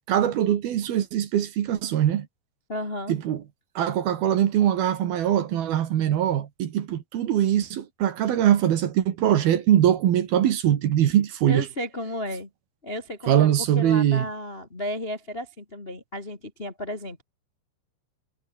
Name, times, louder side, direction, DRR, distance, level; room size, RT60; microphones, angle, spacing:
voice 1, 0.1-2.3 3.1-3.4 3.8-11.7 13.3-14.3, right 11 dB, 60° right, 3.0 m, -22 dB
voice 2, 2.7-3.2 11.5-12.5 12.8-13.5 13.7-17.2, left 1 dB, 80° left, 0.5 m, -33 dB
omnidirectional pair, 5.8 m